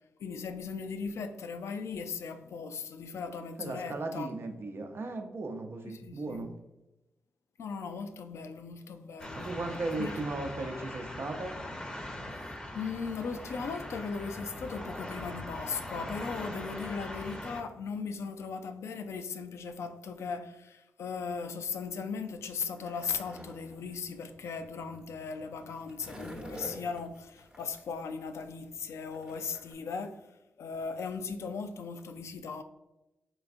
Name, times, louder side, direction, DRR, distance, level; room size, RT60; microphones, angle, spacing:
voice 1, 0.2-4.3 5.8-6.5 7.6-9.5 9.9-10.2 12.3-12.4 12.7-30.3 30.6-32.6, left 5 dB, 75° left, 0.3 m, -38 dB
voice 2, 3.6-6.5 9.3-11.6, right 2 dB, 55° right, 0.6 m, -36 dB
sound 1, 9.2-17.6, left 1 dB, 15° left, 0.6 m, -41 dB
Skateboard, 22.3-29.7, equal, 20° right, 0.9 m, -49 dB
3.9 x 3.4 x 2.4 m
supercardioid pair, 45°, 5 cm